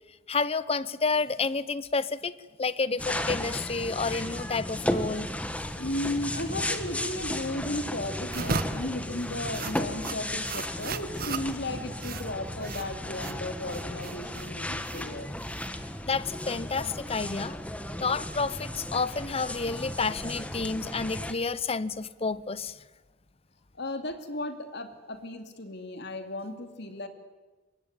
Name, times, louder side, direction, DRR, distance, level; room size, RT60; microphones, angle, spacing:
voice 1, 0.3-2.3 2.6-5.3 16.1-17.6 18.0-22.7, left 4 dB, 30° left, 17 dB, 0.8 m, -30 dB
sound 1, 3.0-21.3, left 1 dB, 5° left, 1.6 m, -35 dB
voice 2, 5.8-15.3 23.7-27.1, left 1 dB, 60° left, 7 dB, 2.8 m, -35 dB
sound 2, 8.3-16.2, right 4 dB, 50° right, 1.2 m, -37 dB
25.0 x 22.0 x 9.2 m, 1.2 s
head